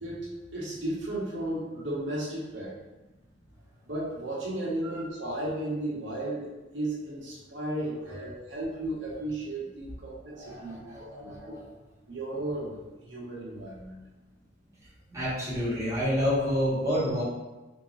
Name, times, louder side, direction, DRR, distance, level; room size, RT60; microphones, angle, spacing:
voice 1, 0.0-2.8 3.9-11.5 12.1-14.0, right 1 dB, 65° right, -6 dB, 1.1 m, -34 dB
voice 2, 10.3-11.6 15.1-17.2, equal, 15° right, -10 dB, 1.3 m, -29 dB
3.5 x 2.7 x 3.1 m, 1.1 s
head